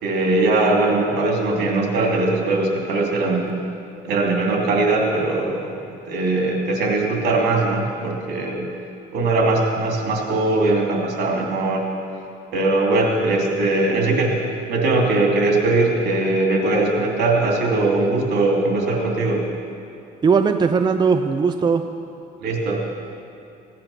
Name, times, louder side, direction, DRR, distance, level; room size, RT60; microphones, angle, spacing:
voice 1, 0.0-3.6 4.0-5.8 6.1-8.7 9.1-11.9 12.5-14.4 14.7-19.4 22.4-22.8, right 2 dB, 70° right, 0 dB, 2.8 m, -20 dB
voice 2, 20.2-21.9, right 5 dB, 25° right, 7 dB, 0.5 m, -18 dB
16.5 x 10.5 x 5.7 m, 2.6 s
cardioid pair, 110°, 17 cm